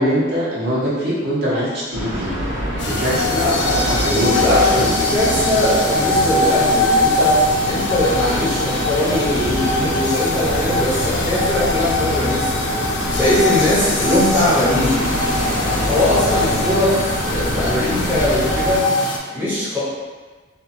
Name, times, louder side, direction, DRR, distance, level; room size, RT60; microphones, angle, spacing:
voice 1, 0.0-2.3 2.7-4.9, equal, 50° right, -7 dB, 0.6 m, -22 dB
sound 1, 1.9-18.8, right 1 dB, 75° right, 1.0 m, -26 dB
sound 2, 2.8-19.2, left 2 dB, 60° left, 0.4 m, -22 dB
voice 2, 3.3-7.4 7.6-12.8 13.1-15.0 15.6-18.8 19.3-19.8, left 1 dB, 10° right, -10 dB, 0.7 m, -21 dB
2.6 x 2.4 x 2.6 m, 1.4 s
head